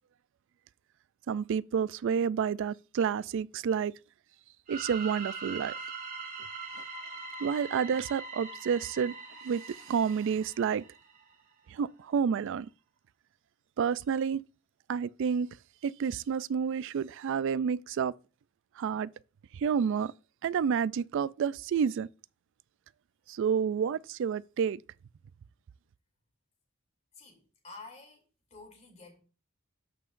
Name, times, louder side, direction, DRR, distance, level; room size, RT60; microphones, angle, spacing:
voice 1, 1.3-3.9 4.7-5.7 7.4-9.2 9.4-10.8 11.7-12.7 13.8-14.4 14.9-15.5 15.8-18.1 18.8-19.1 19.5-20.1 20.4-22.1 23.3-24.8, right 7 dB, 60° right, 0.3 m, -29 dB
sound 1, 4.7-11.3, right 4 dB, 40° right, 2.2 m, -42 dB
voice 2, 27.1-28.2 28.5-29.2, left 3 dB, 30° left, 3.0 m, -50 dB
13.0 x 5.6 x 2.5 m
head